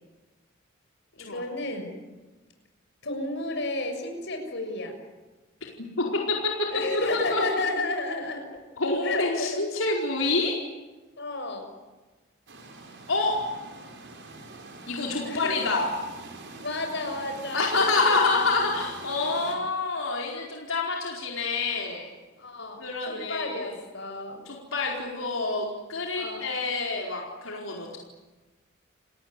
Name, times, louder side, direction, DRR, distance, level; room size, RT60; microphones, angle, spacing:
voice 1, 1.1-1.9 3.0-5.0 6.7-8.5 9.0-9.6 11.2-11.7 15.2-15.6 16.6-18.2 22.4-24.5 25.4-25.6 26.2-26.4, left 2 dB, 60° left, 4 dB, 6.7 m, -32 dB
voice 2, 6.0-6.3 7.1-7.4 8.8-10.5 13.1-13.4 14.9-15.9 17.5-22.1 22.8-23.7 24.5-28.0, left 3 dB, 85° left, -1 dB, 4.7 m, -27 dB
sound 1, 12.5-19.6, right 3 dB, 60° right, 5.3 m, -44 dB
30.0 x 18.5 x 9.8 m, 1.2 s
head